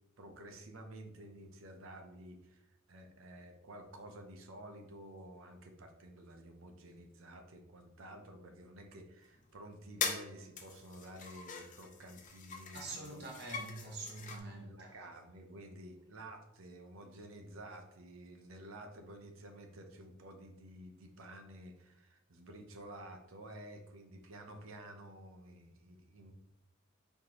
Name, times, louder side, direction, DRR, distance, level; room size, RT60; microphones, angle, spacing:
voice 1, 0.2-2.6 2.9-13.2 14.5-26.3, right 1 dB, 80° right, 0.7 m, -51 dB
sound 1, 9.4-9.5 10.0-10.3 10.6-14.4, left 6 dB, 40° left, 0.5 m, -42 dB
voice 2, 12.7-14.9, right 2 dB, 55° right, 0.9 m, -45 dB
4.3 x 3.3 x 2.9 m
head